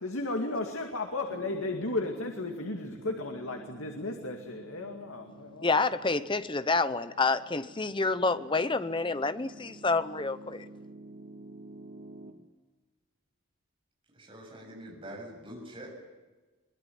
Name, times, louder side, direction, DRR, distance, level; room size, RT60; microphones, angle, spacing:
voice 1, 0.0-5.7, left 2 dB, 85° left, 3 dB, 2.3 m, -34 dB
Piano, 1.3-12.3, right 2 dB, 65° right, 2.5 m, -50 dB
voice 2, 5.6-10.6, left 3 dB, 25° left, 13 dB, 0.8 m, -28 dB
voice 3, 14.1-16.0, right 1 dB, 25° right, 0 dB, 7.5 m, -44 dB
23.0 x 21.0 x 9.4 m, 1.2 s
head